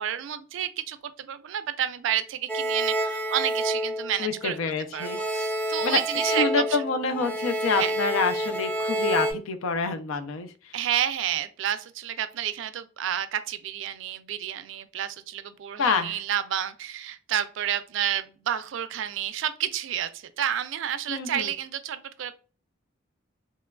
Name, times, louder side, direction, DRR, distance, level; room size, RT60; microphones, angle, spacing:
voice 1, 0.0-4.6 4.9-6.8 7.8-7.9 10.7-22.3, right 10 dB, 65° right, 0.3 m, -30 dB
sound 1, 2.5-4.6 5.0-9.3, right 1 dB, 5° left, 0.4 m, -29 dB
voice 2, 4.2-5.2 5.8-10.7 15.8-16.2 21.1-21.5, left 4 dB, 85° left, 0.4 m, -27 dB
2.9 x 2.2 x 2.2 m
head